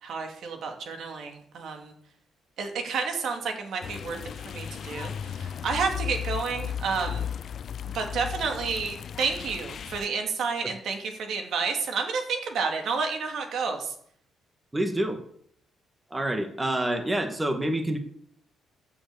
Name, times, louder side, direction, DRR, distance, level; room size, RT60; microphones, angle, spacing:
voice 1, 0.0-1.9 2.6-4.2 4.5-7.2 7.9-13.9, right 5 dB, 70° right, 4 dB, 2.7 m, -30 dB
sound 1, 3.8-10.1, left 9 dB, 55° left, 0.4 m, -35 dB
voice 2, 14.7-15.2 16.1-18.0, right 1 dB, 15° right, 5 dB, 2.0 m, -27 dB
14.5 x 7.2 x 7.1 m, 0.66 s
cardioid pair, 90°, 0 cm